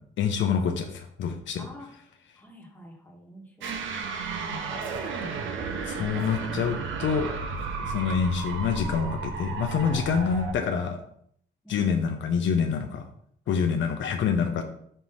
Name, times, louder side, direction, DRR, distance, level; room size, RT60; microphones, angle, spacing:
voice 1, 0.2-1.7 3.9-4.0 5.2-5.3 5.8-7.3 7.8-11.0 11.7-13.0 13.5-14.6, left 6 dB, 70° left, 5 dB, 0.8 m, -26 dB
voice 2, 1.6-1.9 2.3-4.0 11.6-11.9 13.4-13.6, equal, 10° left, 0 dB, 1.5 m, -47 dB
sound 1, 3.6-10.5, right 4 dB, 75° right, 0.9 m, -33 dB
5.5 x 3.1 x 5.5 m, 0.64 s
cardioid pair, 90°, 20 cm